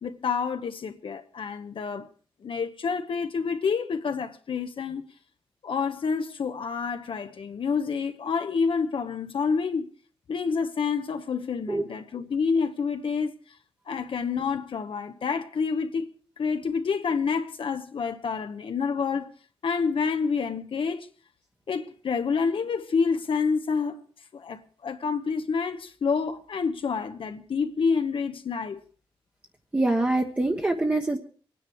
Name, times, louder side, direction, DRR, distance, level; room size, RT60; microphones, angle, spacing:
voice 1, 0.0-2.1 2.4-5.0 5.6-9.9 10.3-13.3 13.9-16.1 16.4-19.3 19.6-21.1 21.7-24.0 24.3-28.8, left 5 dB, 70° left, 1.1 m, -28 dB
voice 2, 29.7-31.2, right 2 dB, 20° right, 1.2 m, -24 dB
25.0 x 9.9 x 4.6 m
wide cardioid pair, 155°, 9 cm